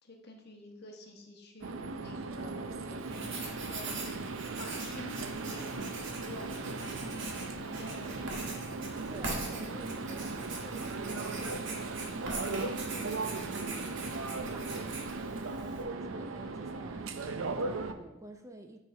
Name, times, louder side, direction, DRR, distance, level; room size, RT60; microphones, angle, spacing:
voice 1, 0.0-8.5, left 1 dB, 55° left, 2 dB, 1.2 m, -50 dB
sound 1, 1.6-17.9, right 3 dB, 85° right, 0.6 m, -38 dB
Writing, 3.0-15.8, right 3 dB, 60° right, 1.4 m, -42 dB
voice 2, 9.1-18.8, right 2 dB, 15° right, 5 dB, 0.4 m, -50 dB
9.8 x 3.4 x 4.6 m, 0.92 s
head